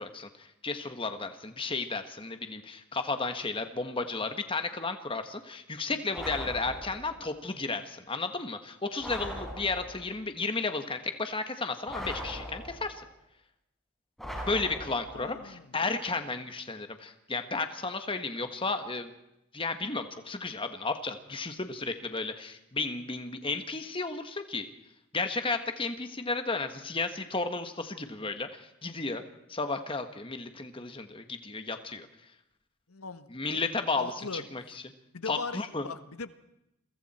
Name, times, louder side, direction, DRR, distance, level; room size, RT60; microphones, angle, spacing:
voice 1, 0.0-13.0 14.4-19.1 19.5-24.7 25.1-29.2 29.5-32.1 33.3-34.8 35.3-35.9, left 3 dB, 25° left, 8 dB, 1.6 m, -33 dB
sound 1, 6.1-7.2 9.0-10.1 11.9-13.0 14.2-15.3, equal, ahead, 5.8 m, -39 dB
voice 2, 15.1-15.7 32.9-33.7 34.0-34.4 35.1-36.5, left 4 dB, 85° left, 11 dB, 1.4 m, -40 dB
29.0 x 23.5 x 4.4 m, 0.86 s
head